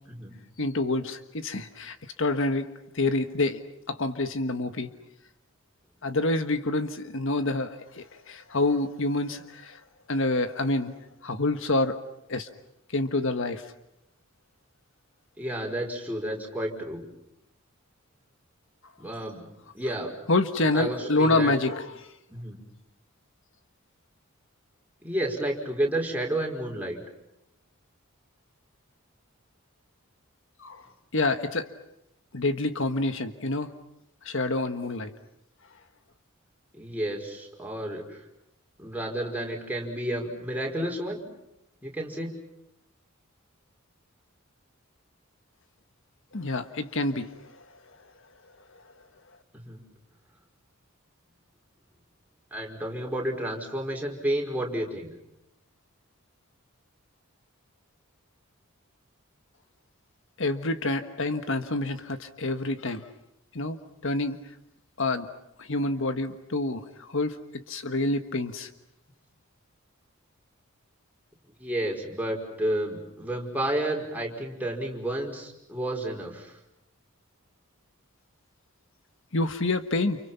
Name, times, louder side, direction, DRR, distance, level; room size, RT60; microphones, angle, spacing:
voice 1, 0.6-2.7 2.9-4.9 6.0-9.8 10.1-10.9 11.2-12.0 12.3-12.5 12.9-13.6 20.3-22.1 30.6-30.9 31.1-31.7 32.3-33.7 34.2-35.1 46.3-47.7 60.4-63.1 63.5-63.8 64.0-64.4 65.0-65.3 65.6-67.4 67.7-68.7 79.3-80.2, left 2 dB, 65° left, 9 dB, 1.4 m, -27 dB
voice 2, 15.4-17.0 19.0-19.5 19.7-20.1 20.7-21.5 22.3-22.6 25.0-27.0 36.7-38.2 38.8-41.2 41.8-42.3 49.5-49.8 52.5-55.1 71.6-76.5, right 1 dB, 10° right, 0 dB, 5.2 m, -31 dB
30.0 x 29.5 x 5.9 m, 0.82 s
head